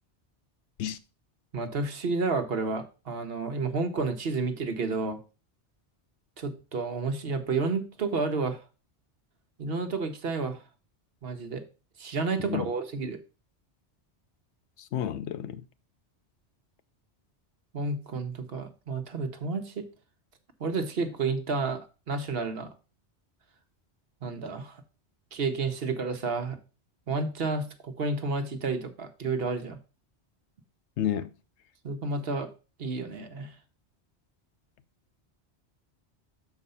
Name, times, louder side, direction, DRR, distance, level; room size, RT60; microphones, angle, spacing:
voice 1, 1.5-5.2 6.4-8.6 9.6-10.6 11.2-11.6 12.0-13.2 17.7-19.9 20.6-22.7 24.2-24.8 25.3-26.6 27.1-29.8 31.8-32.5 32.8-33.5, right 4 dB, 60° right, 1.1 m, -31 dB
voice 2, 14.8-15.6 31.0-31.3, left 10 dB, 80° left, 0.9 m, -31 dB
6.6 x 4.7 x 5.5 m
omnidirectional pair, 1.1 m